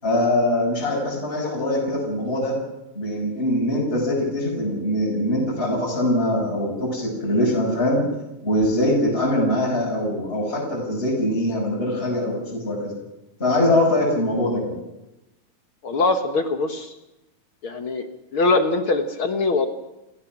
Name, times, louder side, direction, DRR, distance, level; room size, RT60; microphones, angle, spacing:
voice 1, 0.0-2.5 2.9-8.0 8.4-12.9 13.4-14.7, left 1 dB, 15° left, -3 dB, 5.9 m, -22 dB
voice 2, 15.8-16.9 17.6-18.0 18.3-19.7, left 3 dB, 50° left, 7 dB, 1.7 m, -22 dB
29.0 x 17.0 x 6.1 m, 0.96 s
omnidirectional pair, 4.0 m